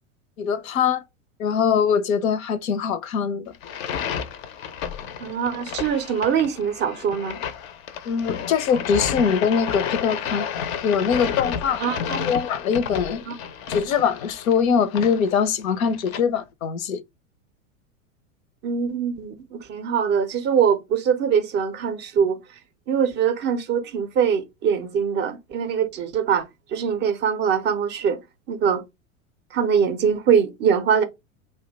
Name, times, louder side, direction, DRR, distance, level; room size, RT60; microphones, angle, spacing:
voice 1, 0.4-1.0 1.4-3.6 8.0-10.5 10.8-11.8 12.1-13.2 13.7-17.0, left 6 dB, 75° left, 0.6 m, -22 dB
sound 1, 3.5-16.2, left 8 dB, 35° left, 0.4 m, -31 dB
voice 2, 5.2-7.4 11.8-12.3 13.3-13.4 18.6-22.4 22.9-28.2 28.5-28.8 29.5-31.0, right 7 dB, 25° right, 0.4 m, -23 dB
2.6 x 2.1 x 3.8 m
hypercardioid pair, 95°, 42 cm